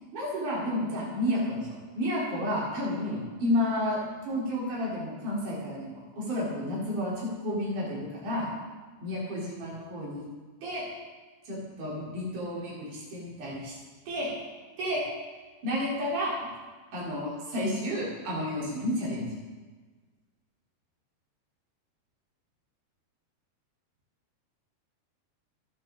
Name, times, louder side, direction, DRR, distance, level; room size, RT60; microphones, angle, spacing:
voice 1, 0.1-4.0 4.2-8.5 9.0-10.2 10.6-10.9 11.5-13.8 14.1-14.3 14.8-15.0 15.6-16.5 16.9-19.3, left 1 dB, 50° right, -7 dB, 6.1 m, -31 dB
27.5 x 9.9 x 4.3 m, 1.4 s
omnidirectional pair, 4.4 m